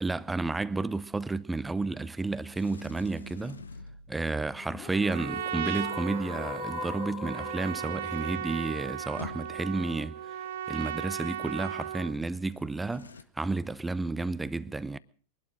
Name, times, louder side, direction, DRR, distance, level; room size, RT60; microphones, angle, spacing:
voice 1, 0.0-3.6 4.1-10.2 10.7-15.0, right 3 dB, 10° right, 0.7 m, -31 dB
Sliding door, 2.5-4.4 8.0-8.1 8.3-9.9 12.5-13.2, left 4 dB, 75° left, 0.9 m, -48 dB
sound 1, 4.6-10.6, left 6 dB, 30° left, 2.9 m, -42 dB
Trumpet, 4.8-12.2, right 10 dB, 60° right, 0.8 m, -36 dB
23.5 x 12.0 x 5.0 m
figure-of-eight pair, 90°, 0 cm